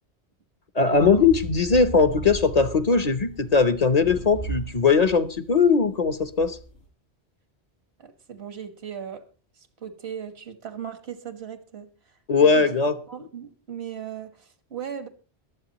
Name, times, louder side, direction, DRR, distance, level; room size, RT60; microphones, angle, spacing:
voice 1, 0.7-6.6 12.3-13.0, left 5 dB, 40° left, 0.8 m, -20 dB
sound 1, 0.9-6.8, right 2 dB, 80° left, 6.0 m, -38 dB
voice 2, 8.0-9.3 9.6-12.1 12.4-12.7 13.1-15.1, right 8 dB, 75° right, 1.7 m, -38 dB
23.0 x 8.3 x 2.9 m
omnidirectional pair, 1.1 m